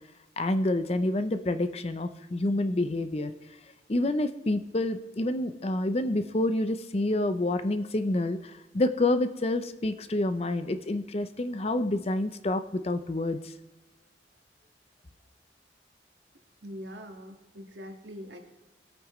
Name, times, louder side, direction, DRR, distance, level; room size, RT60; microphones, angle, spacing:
voice 1, 0.4-3.3 3.9-13.4, left 1 dB, 35° left, 10 dB, 0.6 m, -28 dB
voice 2, 16.6-18.4, equal, 80° right, 3 dB, 1.7 m, -43 dB
21.5 x 8.6 x 3.1 m, 1.1 s
head